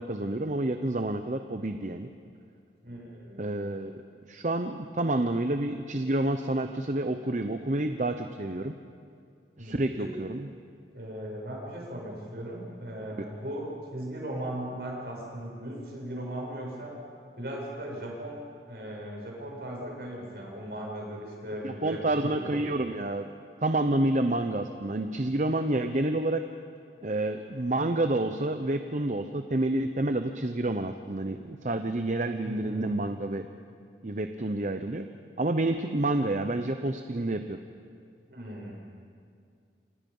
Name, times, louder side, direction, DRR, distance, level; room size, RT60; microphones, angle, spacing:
voice 1, 0.0-2.1 3.4-4.0 4.3-8.7 9.6-10.5 21.6-23.3 23.6-26.4 27.0-33.5 34.0-35.1 35.4-37.6, right 2 dB, 45° right, 7 dB, 0.8 m, -29 dB
voice 2, 2.8-3.7 9.6-10.1 10.9-16.9 17.4-22.7 32.4-32.9 38.3-38.7, right 1 dB, 60° right, -2 dB, 7.5 m, -38 dB
27.5 x 27.0 x 5.5 m, 2.3 s
head